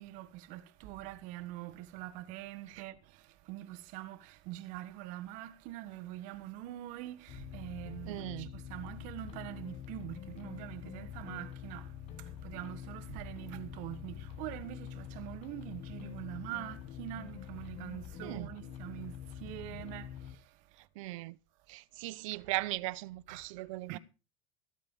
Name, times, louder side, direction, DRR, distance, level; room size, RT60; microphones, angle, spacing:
voice 1, 0.0-20.5 22.3-22.5 23.3-24.0, right 14 dB, 50° right, 1.4 m, -44 dB
sound 1, 7.3-20.3, left 9 dB, 40° left, 1.4 m, -46 dB
voice 2, 8.0-8.5 18.2-18.5 21.0-21.4 21.7-24.0, right 20 dB, 75° right, 0.7 m, -38 dB
15.0 x 9.0 x 5.4 m
supercardioid pair, 165°, 17 cm